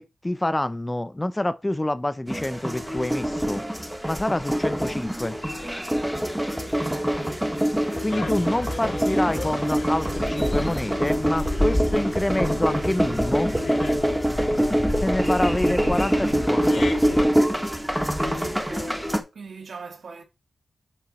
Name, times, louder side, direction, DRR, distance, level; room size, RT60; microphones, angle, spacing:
voice 1, 0.0-3.6 4.1-5.4 8.0-13.5 15.0-16.9, left 1 dB, 15° left, 0.6 m, -27 dB
sound 1, 2.3-19.2, equal, 5° right, 1.7 m, -24 dB
voice 2, 6.7-7.4 18.4-20.2, right 4 dB, 70° right, 1.9 m, -42 dB
sound 2, 8.1-17.2, left 3 dB, 75° left, 2.0 m, -37 dB
7.5 x 5.1 x 4.2 m
cardioid pair, 75°, 0 cm